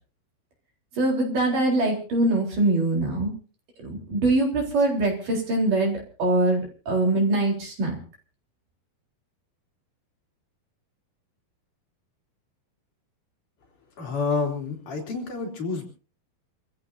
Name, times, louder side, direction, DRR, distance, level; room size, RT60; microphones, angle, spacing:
voice 1, 1.0-3.3 3.8-8.0, right 2 dB, 55° right, 0 dB, 5.4 m, -23 dB
voice 2, 14.0-15.9, left 4 dB, 55° left, 0 dB, 4.6 m, -28 dB
27.5 x 15.5 x 2.7 m, 0.38 s
omnidirectional pair, 4.5 m